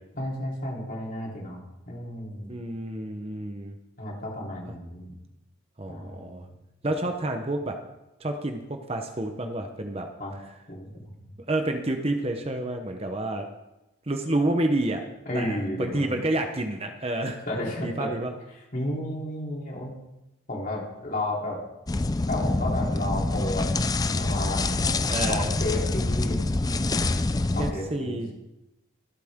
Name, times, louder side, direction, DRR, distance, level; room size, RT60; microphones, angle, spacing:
voice 1, 0.2-1.6 1.9-2.5 4.0-5.1 5.9-6.5 10.2-10.3 10.7-11.3 15.3-16.1 17.5-18.1 18.7-20.0 20.5-21.6 22.3-25.0 25.3-26.4 27.5-28.3, left 1 dB, 40° left, -3 dB, 3.6 m, -32 dB
voice 2, 2.5-3.8 5.8-6.4 6.8-7.8 8.2-10.1 11.5-13.5 14.1-15.0 15.3-17.4 17.8-18.3 25.1-25.6 27.6-28.3, right 1 dB, 30° right, 5 dB, 0.9 m, -29 dB
sound 1, 21.9-27.7, left 2 dB, 20° left, 0.4 m, -26 dB
24.5 x 8.3 x 3.7 m, 0.95 s
head